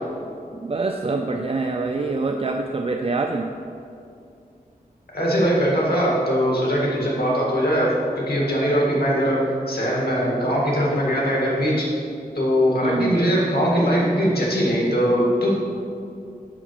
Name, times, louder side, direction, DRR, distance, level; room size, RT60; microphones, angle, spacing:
voice 1, 0.5-3.5 12.8-13.2, right 3 dB, 40° right, 3 dB, 0.4 m, -25 dB
voice 2, 5.1-11.9 12.3-15.5, equal, 85° left, -4 dB, 1.9 m, -21 dB
5.9 x 5.8 x 6.3 m, 2.5 s
wide cardioid pair, 75°, 16 cm